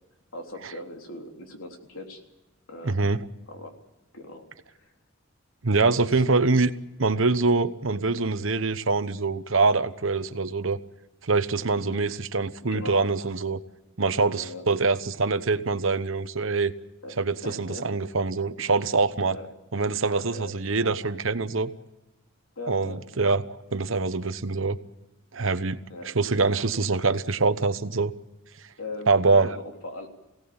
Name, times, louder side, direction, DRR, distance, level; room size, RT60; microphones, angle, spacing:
voice 1, 0.3-2.2 2.7-3.1 3.5-3.7 4.1-4.5 4.8-4.9 5.8-6.4 11.9-12.1 12.7-13.1 14.2-14.6 17.0-17.2 17.4-18.0 18.6-18.7 19.3-19.5 20.1-20.5 22.6-23.0 25.9-26.1 28.8-30.1, left 2 dB, 80° left, 3 dB, 3.4 m, -39 dB
voice 2, 2.8-3.2 5.6-6.7 7.0-10.8 11.2-13.6 14.0-16.7 17.2-19.4 19.7-21.7 22.7-24.8 25.3-25.8 26.0-28.1 29.1-29.6, right 3 dB, 70° right, 12 dB, 1.0 m, -24 dB
24.0 x 17.5 x 8.8 m, 1.0 s
head